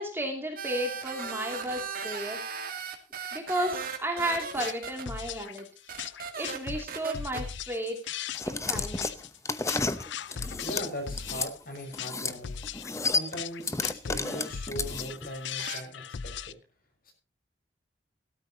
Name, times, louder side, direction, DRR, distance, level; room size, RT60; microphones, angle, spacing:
voice 1, 0.0-2.4 3.3-5.7 6.4-8.0 8.4-9.2, right 1 dB, 15° right, 2 dB, 2.6 m, -33 dB
sound 1, 0.6-5.0 5.6-5.7 5.9-6.6 6.9-7.4 11.7-11.8 15.5-15.8, right 5 dB, 50° right, 2.3 m, -37 dB
percussisconcussis loop, 4.5-16.5, left 7 dB, 75° left, 0.5 m, -38 dB
sound 2, 8.3-11.5 11.9-12.4 12.6-15.3, left 3 dB, 15° left, 0.8 m, -31 dB
voice 2, 10.6-12.6 13.0-16.6 17.0-17.1, equal, 50° left, 4 dB, 6.2 m, -39 dB
17.5 x 13.0 x 2.8 m, 0.32 s
head